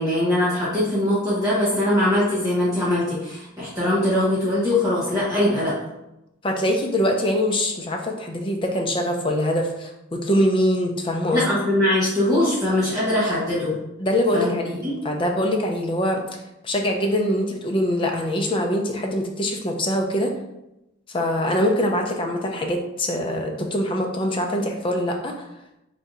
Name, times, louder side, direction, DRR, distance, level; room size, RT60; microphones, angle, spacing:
voice 1, 0.0-5.7 11.3-13.7 14.3-14.6 14.8-15.0, left 1 dB, 15° right, -11 dB, 1.2 m, -21 dB
voice 2, 6.4-11.6 14.0-16.2 16.6-20.3 21.1-25.3, equal, 25° left, 2 dB, 0.4 m, -23 dB
3.4 x 2.7 x 3.7 m, 0.91 s
head